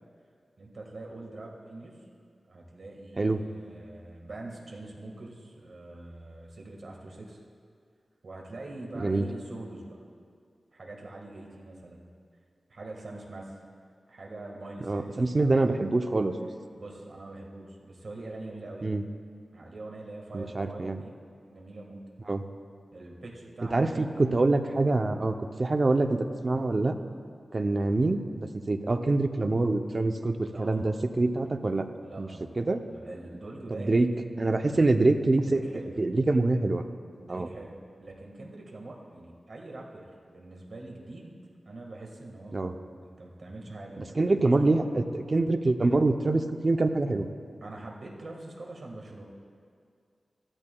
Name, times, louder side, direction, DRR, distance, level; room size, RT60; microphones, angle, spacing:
voice 1, 0.6-2.1 2.5-7.4 8.2-10.0 10.7-12.1 12.7-13.6 14.1-16.0 16.7-18.9 19.5-21.1 21.5-22.0 22.9-24.2 30.4-31.0 32.0-32.5 32.9-34.0 34.6-34.8 35.4-35.9 37.2-41.3 41.6-44.5 47.6-49.2, right 2 dB, 60° right, -1 dB, 1.6 m, -44 dB
voice 2, 14.9-16.4 18.8-19.1 20.3-21.0 22.3-22.4 23.7-26.2 26.4-27.0 27.5-31.8 32.2-32.3 32.6-32.8 33.7-34.1 34.4-35.6 36.0-36.8 37.3-37.5 42.5-42.7 44.0-47.3, right 2 dB, 40° right, 7 dB, 0.5 m, -25 dB
15.0 x 12.5 x 2.3 m, 2.2 s
wide cardioid pair, 110°, 0 cm